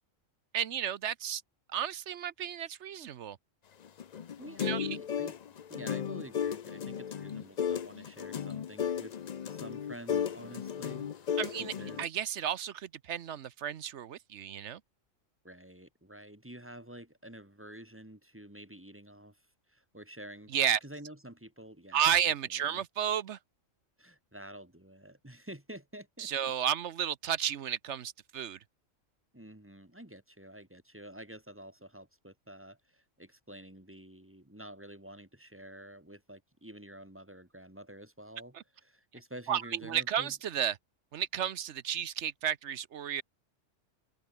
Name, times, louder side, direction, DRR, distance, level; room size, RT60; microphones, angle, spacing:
voice 1, 0.5-1.4 1.7-3.4 4.6-4.9 11.4-11.7 12.0-14.8 20.5-20.8 21.9-23.4 26.2-28.6 39.5-40.7 41.1-43.2, right 9 dB, 65° right, 1.0 m, -32 dB
sound 1, 3.8-12.1, left 8 dB, 45° left, 0.5 m, -35 dB
voice 2, 4.4-5.4 5.7-9.1 9.4-12.0 15.4-19.4 19.7-22.8 24.0-26.5 29.3-38.6 38.8-40.3, right 1 dB, 10° right, 2.0 m, -49 dB
open air
omnidirectional pair, 1.3 m